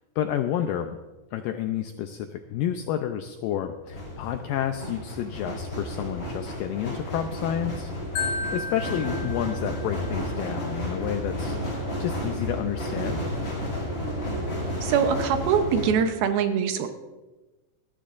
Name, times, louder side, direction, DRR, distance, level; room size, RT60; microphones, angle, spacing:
voice 1, 0.2-1.0 1.3-7.9 8.5-13.2, left 10 dB, 85° left, 6 dB, 2.0 m, -30 dB
sound 1, 2.5-2.7 3.7-15.9, equal, 30° left, 6.0 m, -32 dB
Marimba xylophone, 8.2-10.2, left 4 dB, 50° left, 2.4 m, -33 dB
voice 2, 14.8-16.9, right 7 dB, 75° right, 7 dB, 2.6 m, -23 dB
20.0 x 14.0 x 2.5 m, 1.2 s
omnidirectional pair, 4.6 m